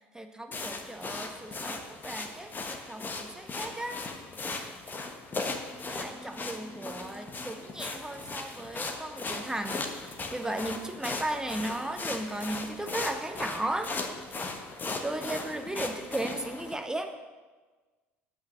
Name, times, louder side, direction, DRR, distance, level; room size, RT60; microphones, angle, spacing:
voice 1, 0.1-4.0 5.8-13.9 15.0-17.1, right 1 dB, 10° right, 6 dB, 0.7 m, -36 dB
sound 1, 0.5-16.7, left 3 dB, 25° left, 1.2 m, -38 dB
8.2 x 5.6 x 6.6 m, 1.3 s
hypercardioid pair, 70°, 7 cm